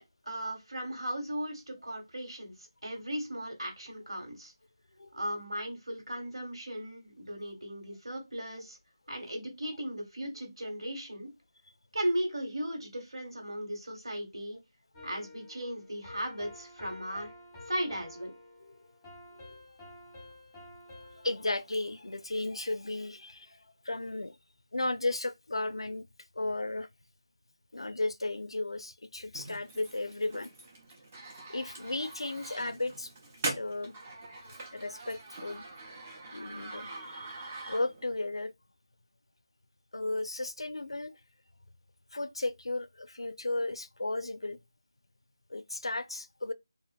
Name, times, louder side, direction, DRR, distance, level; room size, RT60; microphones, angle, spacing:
voice 1, 0.2-4.5 5.1-8.8 9.1-11.3 11.9-14.6 15.0-17.3 17.7-18.3, equal, 80° right, 1.5 m, -37 dB
sound 1, 14.9-22.3, left 2 dB, 5° left, 0.9 m, -51 dB
voice 2, 19.3-20.0 20.9-24.4 24.7-26.0 26.4-26.9 27.7-30.5 31.5-33.1 33.6-34.0 34.7-35.7 36.3-38.5 39.9-41.1 42.1-44.6 45.5-46.5, left 2 dB, 85° left, 0.4 m, -35 dB
sound 2, 29.3-38.2, right 2 dB, 20° right, 0.5 m, -43 dB
2.7 x 2.4 x 2.4 m
figure-of-eight pair, 170°, 3 cm